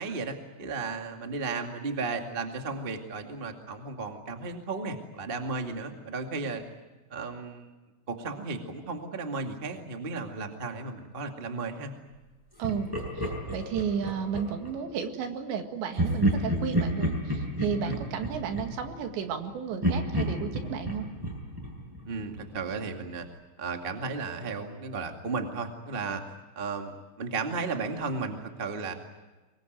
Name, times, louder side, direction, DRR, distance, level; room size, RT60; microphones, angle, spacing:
voice 1, 0.0-6.6 7.1-7.7 8.1-11.9 17.8-18.0 22.0-23.3 23.6-26.2 26.5-28.9, right 4 dB, 40° right, 4 dB, 0.7 m, -34 dB
Laughter, 12.6-14.8 15.9-19.4 19.8-22.6, right 1 dB, 5° right, 6.1 m, -31 dB
voice 2, 12.6-21.1, right 7 dB, 75° right, 6 dB, 4.1 m, -33 dB
25.0 x 21.5 x 9.3 m, 1.2 s
omnidirectional pair, 5.2 m